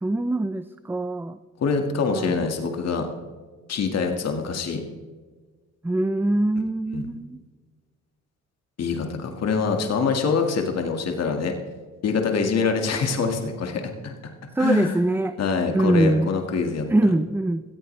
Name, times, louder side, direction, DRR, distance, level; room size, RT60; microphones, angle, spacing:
voice 1, 0.0-1.4 2.1-2.4 5.8-7.4 14.5-15.3 15.7-16.3 16.9-17.6, right 2 dB, 5° right, 11 dB, 0.5 m, -23 dB
voice 2, 1.6-3.1 3.7-4.8 6.9-7.1 8.8-11.6 12.0-14.1 14.6-15.0 15.4-17.1, left 5 dB, 55° left, 4 dB, 1.9 m, -25 dB
18.0 x 14.5 x 3.3 m, 1.5 s
cardioid pair, 90°, 30 cm